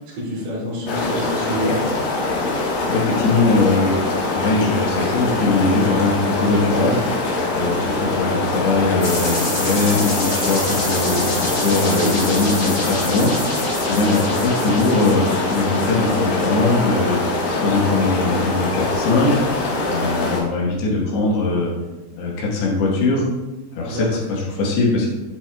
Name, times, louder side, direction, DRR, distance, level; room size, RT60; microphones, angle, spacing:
voice 1, 0.0-1.8 11.9-12.1 23.9-24.1, equal, 70° right, -8 dB, 3.4 m, -26 dB
sound 1, 0.9-20.4, left 2 dB, 65° left, 2.9 m, -23 dB
voice 2, 2.9-21.7 22.2-23.2 23.7-25.1, left 3 dB, 85° left, -3 dB, 3.5 m, -21 dB
sound 2, 9.0-16.8, left 1 dB, 30° left, 2.6 m, -28 dB
8.3 x 7.6 x 2.3 m, 1.1 s
omnidirectional pair, 4.7 m